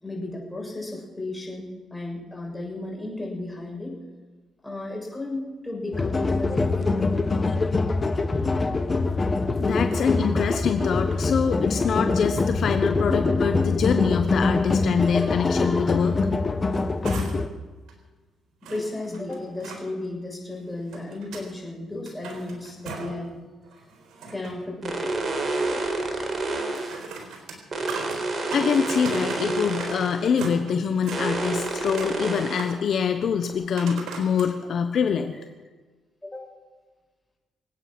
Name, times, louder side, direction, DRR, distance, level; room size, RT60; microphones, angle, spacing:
voice 1, 0.0-4.0 4.6-7.3 11.5-11.7 18.7-23.3 24.3-25.1 36.2-36.5, left 2 dB, 10° left, -1 dB, 6.8 m, -34 dB
sound 1, 5.9-17.5, left 3 dB, 30° left, 1.2 m, -24 dB
voice 2, 9.6-16.2 28.5-35.3, left 6 dB, 60° left, 7 dB, 1.1 m, -25 dB
sound 2, 16.5-17.6 17.9-18.0 18.6-19.8 20.6-21.5 21.9-23.3 23.6-24.7 26.6-30.0 30.3-31.2 31.6-32.2 32.5-33.0 33.8-34.5 35.1-35.2, right 4 dB, 80° right, 4.0 m, -39 dB
sound 3, 24.8-27.0 27.7-30.3 31.1-32.7 33.5-33.6, right 2 dB, 40° right, 4.0 m, -29 dB
26.0 x 9.1 x 6.1 m, 1.3 s
cardioid pair, 90°, 0 cm